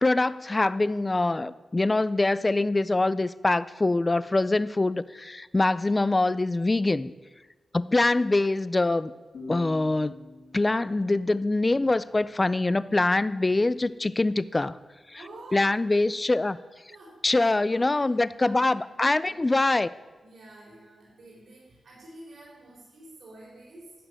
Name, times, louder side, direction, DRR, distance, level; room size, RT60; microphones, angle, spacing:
voice 1, 0.0-7.1 7.7-9.1 9.5-10.2 10.5-14.8 15.1-15.2 15.5-16.6 17.2-19.9, left 2 dB, 20° left, 17 dB, 0.3 m, -24 dB
sound 1, 9.3-12.8, left 3 dB, 75° left, 4.3 m, -46 dB
voice 2, 15.1-15.9 16.2-16.5 16.9-18.1 18.4-19.6 20.2-23.9, right 1 dB, 65° right, -4 dB, 3.7 m, -49 dB
11.0 x 6.4 x 9.2 m, 1.3 s
wide cardioid pair, 160°, 0 cm